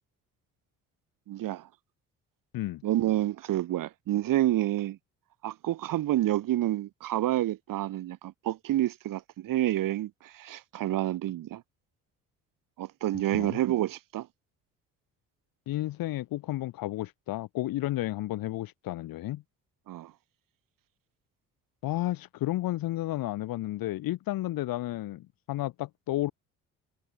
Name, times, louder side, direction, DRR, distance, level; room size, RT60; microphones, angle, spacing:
voice 1, 1.3-1.7 2.8-5.0 5.4-11.6 12.8-14.3 19.9-20.1, right 14 dB, 60° right, 1.2 m, -29 dB
voice 2, 15.7-19.4 21.8-26.3, left 15 dB, 65° left, 1.5 m, -32 dB
hypercardioid pair, 50°, 38 cm